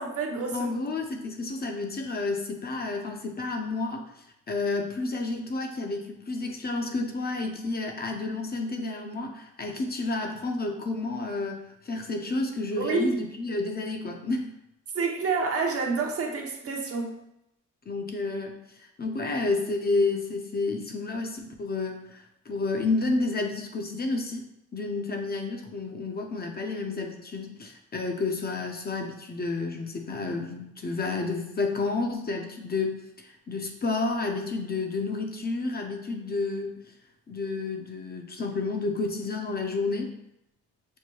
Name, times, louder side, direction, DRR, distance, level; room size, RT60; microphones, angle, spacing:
voice 1, 0.0-0.7 12.8-13.2 14.9-17.2, right 4 dB, 50° right, 2 dB, 0.8 m, -28 dB
voice 2, 0.5-14.5 17.9-24.5 24.7-36.7 37.3-40.1, left 3 dB, 30° left, 3 dB, 0.7 m, -30 dB
6.4 x 2.2 x 3.0 m, 0.80 s
cardioid pair, 90°, 30 cm